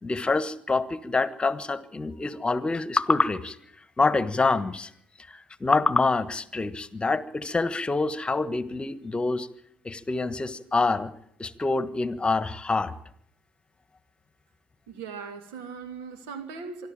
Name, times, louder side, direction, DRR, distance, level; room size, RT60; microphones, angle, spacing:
voice 1, 0.0-3.6 4.0-4.9 5.3-9.5 9.8-11.1 11.4-12.9, left 3 dB, 25° left, 1.4 m, -26 dB
voice 2, 14.9-16.9, right 5 dB, 85° right, 2.5 m, -39 dB
25.0 x 12.5 x 9.0 m
supercardioid pair, 70°, 4 cm